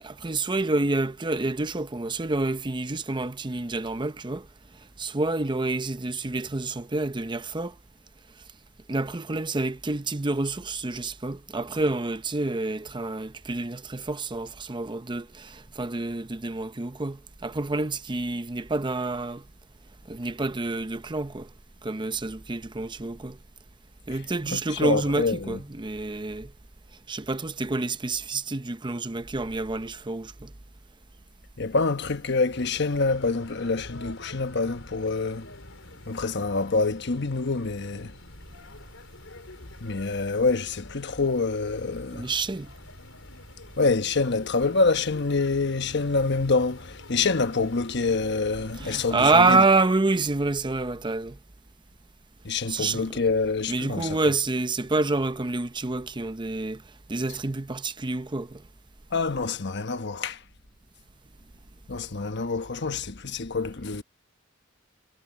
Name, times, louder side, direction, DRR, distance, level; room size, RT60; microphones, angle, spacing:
voice 1, 0.0-4.5 5.0-7.7 8.9-19.4 20.1-21.5 21.8-23.4 24.1-26.5 27.1-30.5 42.1-42.7 48.8-51.4 52.7-53.0 53.7-56.8 57.1-58.6, right 3 dB, 25° right, 0.7 m, -28 dB
voice 2, 24.5-25.6 31.6-35.5 36.1-38.1 39.8-42.3 43.8-49.6 52.4-54.2 59.1-60.4 61.9-64.0, left 3 dB, 60° left, 1.1 m, -26 dB
sound 1, 32.5-49.6, left 2 dB, 80° left, 4.5 m, -47 dB
head